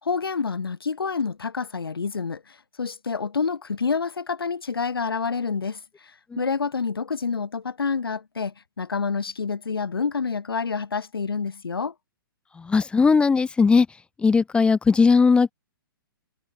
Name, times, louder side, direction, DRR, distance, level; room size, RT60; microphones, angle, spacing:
voice 1, 0.0-11.9, left 5 dB, 75° left, 2.3 m, -28 dB
voice 2, 12.6-13.9 14.2-15.5, left 5 dB, 10° left, 0.8 m, -18 dB
figure-of-eight pair, 125°, 12 cm